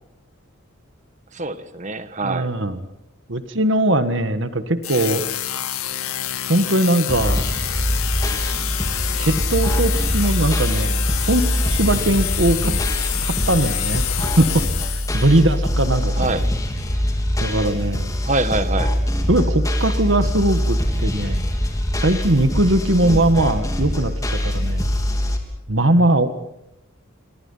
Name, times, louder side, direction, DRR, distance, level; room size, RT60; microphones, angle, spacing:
voice 1, 1.3-2.5 12.6-12.8 16.2-16.4 18.2-18.9 23.0-23.3, right 2 dB, 35° right, 11 dB, 1.5 m, -25 dB
voice 2, 2.2-2.8 3.3-5.2 6.5-7.4 9.2-12.8 13.2-16.4 17.4-18.1 19.3-21.4 22.0-24.9 25.7-26.5, right 1 dB, 60° right, 10 dB, 1.6 m, -20 dB
sound 1, 4.8-15.4, left 11 dB, 90° left, 2.2 m, -27 dB
sound 2, 7.1-25.4, equal, 15° left, 3.6 m, -23 dB
29.0 x 23.5 x 5.6 m, 0.86 s
head